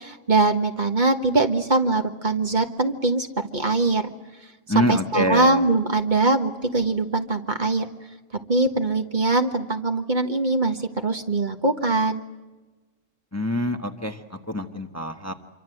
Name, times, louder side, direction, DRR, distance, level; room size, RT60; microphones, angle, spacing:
voice 1, 0.0-3.3 3.5-4.1 4.7-7.9 8.5-12.2, right 2 dB, 40° right, 5 dB, 1.6 m, -22 dB
voice 2, 4.7-5.6 13.3-14.2 14.5-15.3, left 1 dB, 15° left, 5 dB, 1.2 m, -25 dB
27.0 x 24.0 x 7.9 m, 1.2 s
omnidirectional pair, 1.3 m